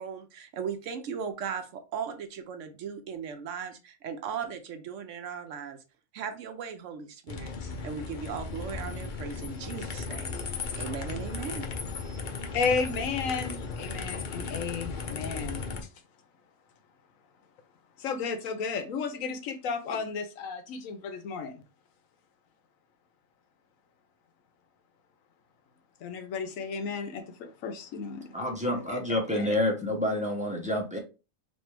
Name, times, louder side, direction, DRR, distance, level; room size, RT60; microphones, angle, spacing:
voice 1, 0.0-5.8 6.1-7.5 7.8-10.3 10.8-11.7, right 7 dB, 70° right, 0.9 m, -37 dB
sound 1, 7.3-15.8, left 4 dB, 55° left, 0.6 m, -36 dB
voice 2, 12.5-15.7 18.0-21.6 26.0-28.4 28.7-29.6, left 5 dB, 75° left, 1.1 m, -33 dB
voice 3, 28.3-31.0, left 1 dB, 5° right, 0.6 m, -28 dB
3.3 x 2.6 x 4.3 m
omnidirectional pair, 1.4 m